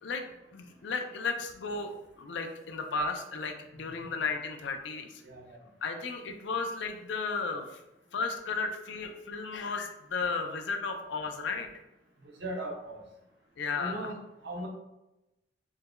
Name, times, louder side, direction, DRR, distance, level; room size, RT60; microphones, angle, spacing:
voice 1, 0.5-1.9 2.2-5.2 5.8-7.8 8.1-11.7 13.6-14.1, left 4 dB, 65° left, 5 dB, 0.4 m, -34 dB
voice 2, 3.7-4.1 5.2-5.6 12.2-13.0 13.7-14.7, right 1 dB, 60° right, 0 dB, 0.7 m, -39 dB
4.5 x 2.2 x 2.3 m, 0.95 s
head